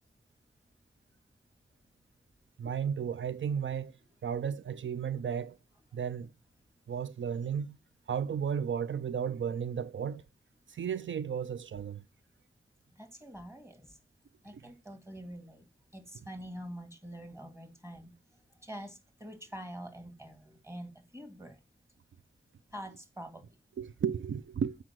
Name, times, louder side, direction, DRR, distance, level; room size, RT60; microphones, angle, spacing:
voice 1, 2.6-3.9 4.2-5.6 5.9-6.3 6.9-7.8 8.1-10.2 10.7-12.0 23.8-24.8, right 7 dB, 75° right, 0.4 m, -34 dB
voice 2, 13.0-13.9 14.4-15.6 15.9-18.1 18.6-20.9 21.1-21.6 22.7-23.4, equal, 15° right, 2.3 m, -45 dB
7.5 x 5.5 x 6.1 m
wide cardioid pair, 70°, 20 cm